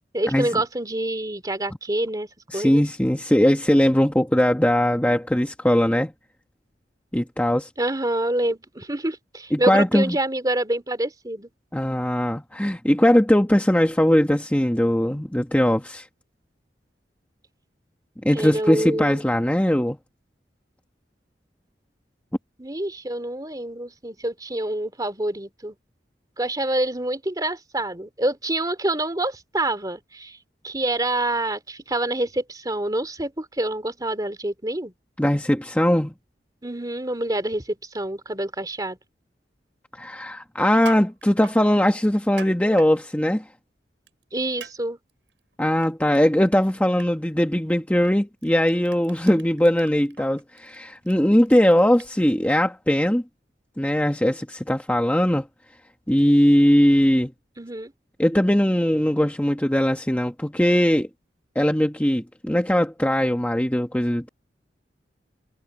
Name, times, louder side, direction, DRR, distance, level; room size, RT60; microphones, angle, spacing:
voice 1, 0.1-2.3 2.5-2.8 7.8-11.5 18.3-19.2 22.6-25.7 26.4-30.4 30.6-34.9 36.6-37.6 37.9-39.0 44.3-45.0 57.6-57.9, right 1 dB, 20° right, 3.0 m, -27 dB
voice 2, 2.5-6.1 7.1-7.7 9.5-10.2 11.7-16.1 18.2-20.0 35.2-36.1 40.0-43.5 45.6-53.2 53.8-55.5 56.1-57.3 58.2-61.1 61.5-64.3, equal, 10° left, 1.1 m, -20 dB
Crushing, 40.6-41.6 42.2-42.9 44.1-44.2 44.6-44.7 45.1-46.2 46.5-46.7 47.0-47.1 48.0-48.1 48.4-52.5, right 5 dB, 85° right, 7.3 m, -42 dB
head